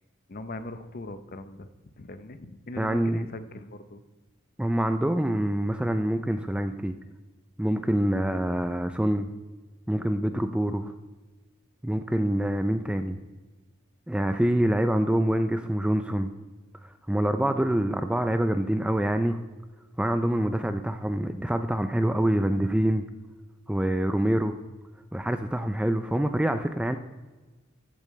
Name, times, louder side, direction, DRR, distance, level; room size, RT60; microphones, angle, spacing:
voice 1, 0.3-4.0, left 2 dB, 45° left, 11 dB, 0.7 m, -40 dB
voice 2, 2.8-3.3 4.6-6.9 7.6-9.3 9.9-10.9 11.8-13.2 14.1-16.3 16.8-19.4 20.0-23.0 23.7-24.5 25.1-27.0, right 1 dB, 5° right, 8 dB, 0.3 m, -26 dB
14.0 x 8.5 x 3.2 m, 1.2 s
head